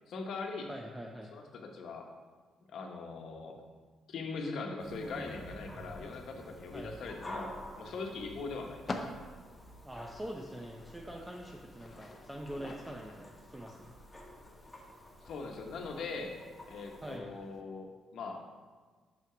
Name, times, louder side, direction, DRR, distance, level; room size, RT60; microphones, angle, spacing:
voice 1, 0.1-0.7 1.3-2.1 2.7-3.6 4.1-8.8 15.2-16.3 16.7-18.4, left 4 dB, 65° left, 3 dB, 1.0 m, -41 dB
voice 2, 0.7-1.3 6.7-7.0 9.8-13.9 17.0-17.3, right 1 dB, 10° right, 0 dB, 0.6 m, -44 dB
sound 1, 4.8-17.2, left 1 dB, 10° left, 1.3 m, -50 dB
sound 2, 6.1-17.6, left 2 dB, 35° left, 0.7 m, -49 dB
6.1 x 5.6 x 4.9 m, 1.4 s
cardioid pair, 90°, 0 cm